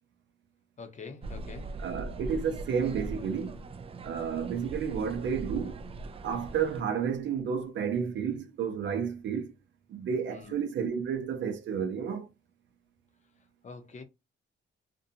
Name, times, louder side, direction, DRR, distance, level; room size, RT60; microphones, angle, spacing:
voice 1, 0.8-1.7 10.3-10.6 13.6-14.0, left 4 dB, 35° left, 0.7 m, -45 dB
sound 1, 1.2-6.8, right 2 dB, 30° right, 0.4 m, -40 dB
voice 2, 1.8-3.6 4.0-5.8 6.2-9.5 9.9-12.3, right 7 dB, 65° right, 0.6 m, -31 dB
2.5 x 2.2 x 2.7 m
cardioid pair, 90°, 20 cm